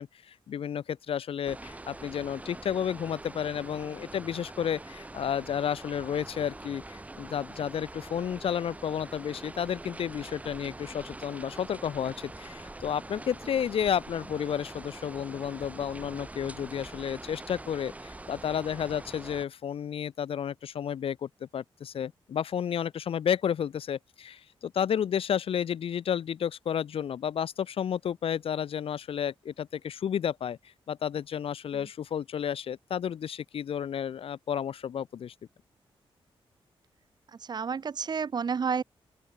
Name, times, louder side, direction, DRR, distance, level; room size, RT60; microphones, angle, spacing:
voice 1, 0.0-35.3, left 8 dB, 75° left, 2.8 m, -32 dB
sound 1, 1.4-19.5, right 2 dB, 15° right, 7.1 m, -44 dB
voice 2, 37.3-38.8, right 6 dB, 45° right, 3.3 m, -31 dB
open air
wide cardioid pair, 145°, 10 cm